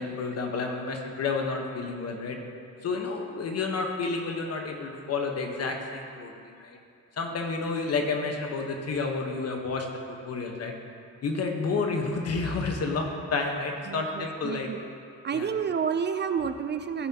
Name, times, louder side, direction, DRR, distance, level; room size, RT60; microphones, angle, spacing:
voice 1, 0.0-2.4 2.8-6.8 7.2-9.9 10.2-10.7 11.2-14.7 15.3-15.5, left 4 dB, 55° left, 3 dB, 1.2 m, -30 dB
voice 2, 13.9-14.8 15.2-17.1, right 7 dB, 35° right, 9 dB, 0.4 m, -30 dB
15.5 x 5.8 x 2.9 m, 2.4 s
cardioid pair, 90°, 30 cm